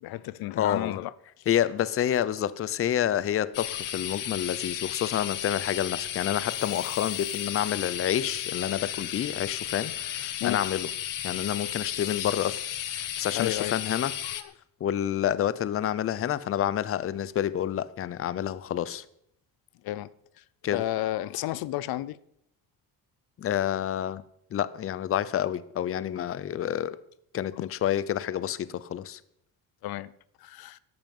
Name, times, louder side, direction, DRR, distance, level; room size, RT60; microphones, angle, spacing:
voice 1, 0.0-1.1 1.4-1.5 10.4-10.6 13.3-13.8 14.2-14.4 19.8-20.1 20.4-20.5 20.7-22.2 29.8-30.1 30.4-30.8, left 15 dB, 75° left, 0.6 m, -32 dB
voice 2, 0.6-1.0 1.5-10.9 11.2-12.7 12.9-14.1 14.8-19.0 20.6-20.8 23.4-24.2 24.5-27.0 27.3-29.2, left 10 dB, 40° left, 0.6 m, -28 dB
sound 1, 3.5-14.4, left 11 dB, 60° left, 1.1 m, -34 dB
13.5 x 12.0 x 5.4 m
cardioid pair, 145°, 36 cm